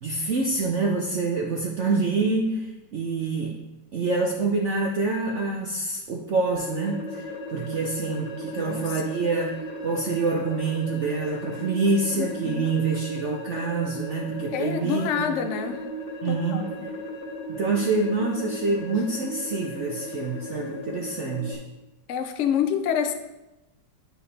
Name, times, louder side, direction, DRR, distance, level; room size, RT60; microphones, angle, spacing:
voice 1, 0.0-3.6 3.9-15.4 16.2-16.7 17.5-21.6, right 3 dB, 70° right, 0 dB, 0.6 m, -26 dB
sound 1, 6.5-21.5, equal, 40° left, 1.5 m, -36 dB
voice 2, 8.6-9.0 12.2-12.7 14.5-15.8 16.2-16.9 22.1-23.1, left 8 dB, 85° left, 7 dB, 0.6 m, -28 dB
10.0 x 4.8 x 3.3 m, 0.97 s
omnidirectional pair, 2.1 m